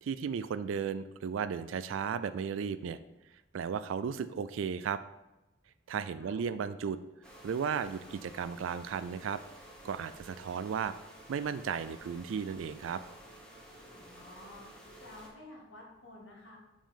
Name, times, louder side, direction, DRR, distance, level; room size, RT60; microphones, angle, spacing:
voice 1, 0.0-3.0 3.5-5.0 5.9-7.0 7.4-9.4 9.8-10.9 11.3-13.0, right 7 dB, 80° right, 13 dB, 0.3 m, -35 dB
voice 2, 6.1-6.4 13.9-14.7 15.0-16.6, left 2 dB, 75° left, -1 dB, 1.9 m, -51 dB
sound 1, 7.2-15.3, right 1 dB, 5° left, 1.2 m, -52 dB
5.5 x 5.3 x 5.1 m, 0.99 s
head